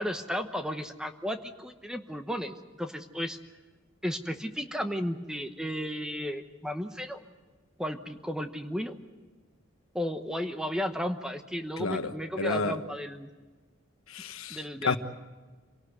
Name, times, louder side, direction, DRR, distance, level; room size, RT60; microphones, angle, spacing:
voice 1, 0.0-3.4 4.0-7.2 7.8-8.9 9.9-13.3 14.5-15.0, equal, 5° right, 7 dB, 1.0 m, -34 dB
voice 2, 11.8-12.1 12.4-12.8 14.1-15.0, left 4 dB, 85° left, 9 dB, 1.3 m, -30 dB
26.5 x 18.0 x 8.1 m, 1.3 s
head